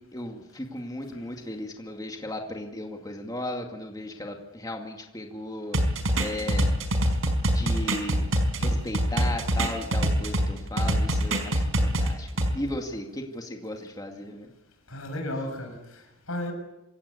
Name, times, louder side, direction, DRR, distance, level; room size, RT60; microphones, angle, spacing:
voice 1, 0.1-5.8 6.2-6.8 7.5-8.3 8.6-12.3 12.5-14.5, left 1 dB, 20° left, 2.3 m, -35 dB
sound 1, 5.7-10.5 10.8-12.5, right 1 dB, 75° right, 4.6 m, -24 dB
voice 2, 14.9-16.5, left 1 dB, 85° left, 6.9 m, -34 dB
26.5 x 17.0 x 8.6 m
head